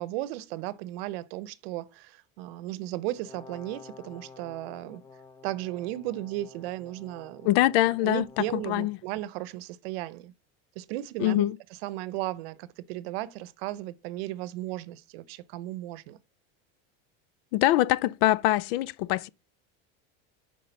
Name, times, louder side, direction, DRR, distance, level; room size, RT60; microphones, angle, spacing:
voice 1, 0.0-5.0 5.4-7.5 8.0-10.3 10.8-11.5 11.8-16.2, right 15 dB, 80° right, 0.7 m, -35 dB
Brass instrument, 3.1-9.0, left 4 dB, 15° left, 0.6 m, -50 dB
voice 2, 7.4-9.0 11.2-11.6 17.5-19.3, left 15 dB, 75° left, 0.5 m, -24 dB
5.8 x 5.0 x 5.2 m
supercardioid pair, 130°, 30 cm